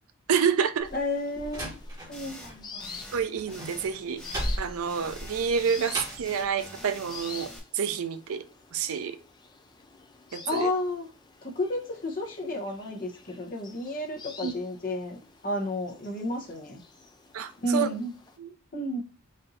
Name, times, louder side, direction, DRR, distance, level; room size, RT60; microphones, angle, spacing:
voice 1, 0.3-0.9 3.1-8.5 8.7-9.2 10.3-10.7 14.4-14.5 17.3-17.9 18.4-18.5, right 7 dB, 75° right, 0.4 m, -28 dB
sound 1, 0.8-18.4, left 5 dB, 20° left, 0.4 m, -48 dB
Slam, 0.8-2.6 2.9-6.4, equal, 15° right, 1.3 m, -36 dB
voice 2, 0.9-1.8 2.1-2.9 10.5-11.1 11.4-15.2 15.4-16.8 17.6-18.1 18.7-19.0, left 1 dB, 40° left, 0.9 m, -31 dB
sound 2, 2.1-2.5 2.8-3.2 3.5-3.9 4.2-4.6 4.9-7.6, left 1 dB, 5° left, 0.8 m, -45 dB
4.2 x 2.6 x 3.8 m
head